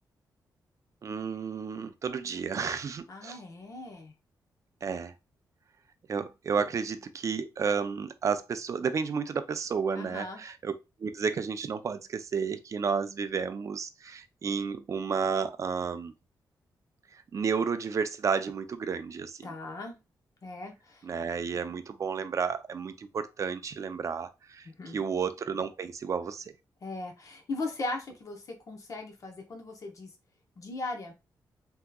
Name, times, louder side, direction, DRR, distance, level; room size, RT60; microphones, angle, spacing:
voice 1, 1.0-3.4 4.8-5.1 6.1-10.7 11.0-16.1 17.3-19.5 21.0-24.7 24.9-26.4, right 6 dB, 45° right, 0.4 m, -32 dB
voice 2, 3.1-4.1 6.6-6.7 9.9-10.4 19.4-20.0 20.4-21.1 24.8-25.0 26.8-30.1 30.6-31.1, left 2 dB, 50° left, 0.7 m, -38 dB
3.5 x 2.8 x 2.2 m
wide cardioid pair, 115°, 8 cm